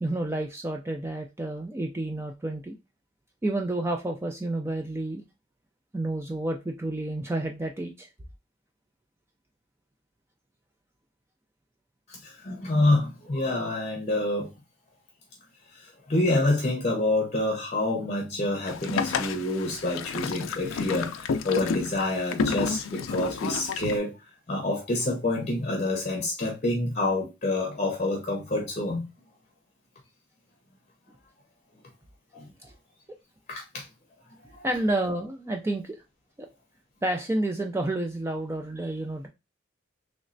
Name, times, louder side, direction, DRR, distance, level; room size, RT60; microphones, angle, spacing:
voice 1, 0.0-2.8 3.4-5.2 5.9-8.1 32.6-32.7 34.6-36.0 36.4-36.5 37.0-39.3, right 1 dB, 15° right, 0.3 m, -30 dB
voice 2, 12.1-14.5 15.7-24.2 24.5-29.1 32.3-32.5 33.5-33.9 34.5-34.6, left 2 dB, 35° left, 0.7 m, -27 dB
Boat Water vehicle, 18.7-24.0, left 5 dB, 80° left, 0.4 m, -31 dB
3.1 x 3.1 x 2.5 m
head